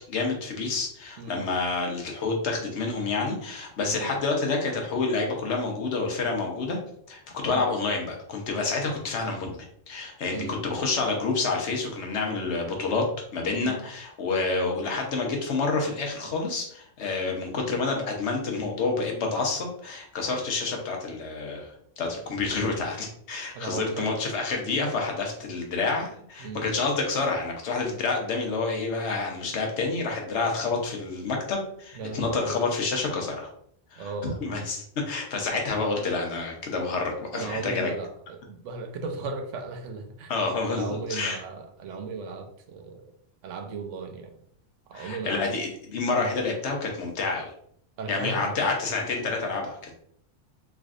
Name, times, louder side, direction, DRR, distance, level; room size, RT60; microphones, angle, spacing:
voice 1, 0.1-6.8 7.1-9.6 9.9-13.0 13.3-33.5 33.9-34.1 34.4-37.9 40.3-41.4 44.9-47.5 48.1-49.9, left 3 dB, 70° left, 1 dB, 1.1 m, -28 dB
voice 2, 10.3-10.6 13.6-13.8 23.5-24.1 26.4-26.7 31.9-32.6 34.0-34.4 37.3-40.3 40.7-43.1 43.4-44.4 44.9-45.4 46.1-46.3 48.0-48.6, right 4 dB, 90° right, 5 dB, 1.0 m, -36 dB
3.4 x 3.1 x 2.4 m, 0.66 s
omnidirectional pair, 1.2 m